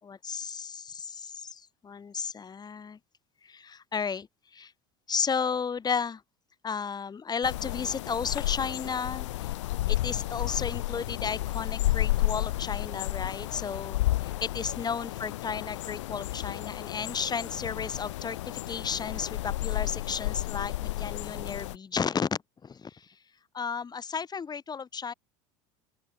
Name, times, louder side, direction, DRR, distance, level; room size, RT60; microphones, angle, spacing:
voice 1, 0.0-3.0 3.4-4.7 5.1-6.2 6.6-9.5 9.9-23.1 23.5-25.1, left 6 dB, 25° left, 6.0 m, -33 dB
sound 1, 7.4-21.8, left 16 dB, 90° left, 2.2 m, -32 dB
open air
supercardioid pair, 95°, 15 cm